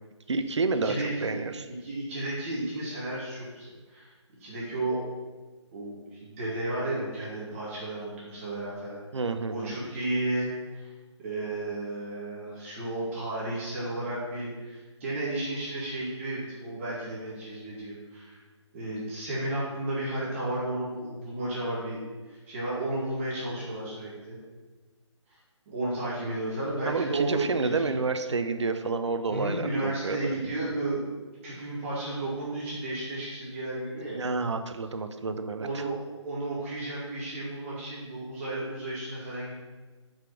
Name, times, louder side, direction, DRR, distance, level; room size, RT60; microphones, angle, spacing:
voice 1, 0.3-1.6 9.1-9.7 26.9-30.4 34.1-35.8, right 4 dB, 70° right, 9 dB, 0.7 m, -29 dB
voice 2, 0.8-1.5 1.8-4.1 4.4-5.0 5.7-10.5 10.7-10.9 11.2-18.4 18.7-22.0 22.3-24.4 25.7-27.9 29.3-31.1 31.4-34.2 35.6-39.5, right 2 dB, 25° right, -7 dB, 2.1 m, -33 dB
5.8 x 5.2 x 5.9 m, 1.3 s
figure-of-eight pair, 150°, 16 cm